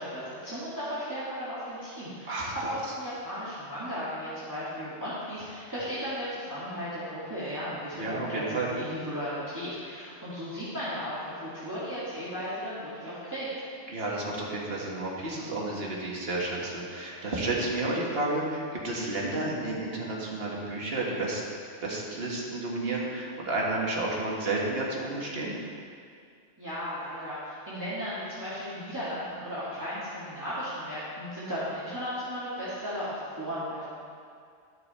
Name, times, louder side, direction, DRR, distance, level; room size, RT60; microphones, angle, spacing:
voice 1, 0.0-13.5 26.6-33.9, equal, 15° right, -12 dB, 2.0 m, -35 dB
voice 2, 2.3-2.8 8.0-8.7 13.9-21.4 21.8-25.6, right 2 dB, 50° right, -4 dB, 1.8 m, -31 dB
12.0 x 6.6 x 4.3 m, 2.3 s
omnidirectional pair, 1.3 m